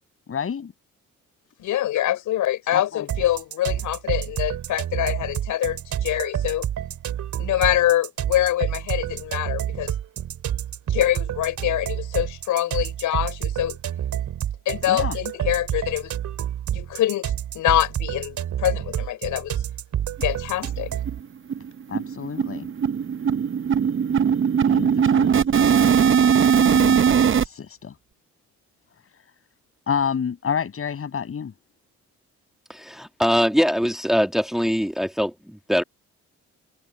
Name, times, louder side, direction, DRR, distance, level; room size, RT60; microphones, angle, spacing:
voice 1, 0.3-0.7 2.7-3.1 14.9-15.2 21.9-22.7 24.7-25.4 26.6-27.9 29.9-31.5, left 7 dB, 50° left, 7.0 m, -29 dB
voice 2, 1.6-6.7 7.4-9.9 10.9-13.8 14.7-16.1 16.7-19.6 20.2-20.9, left 13 dB, 80° left, 5.9 m, -25 dB
sound 1, 3.1-21.2, right 10 dB, 70° right, 2.9 m, -29 dB
sound 2, 20.2-20.3 20.6-20.7 21.1-21.2 21.5-27.5, right 7 dB, 40° right, 0.8 m, -19 dB
voice 3, 32.7-35.8, equal, ahead, 2.4 m, -22 dB
cardioid pair, 90°, 30 cm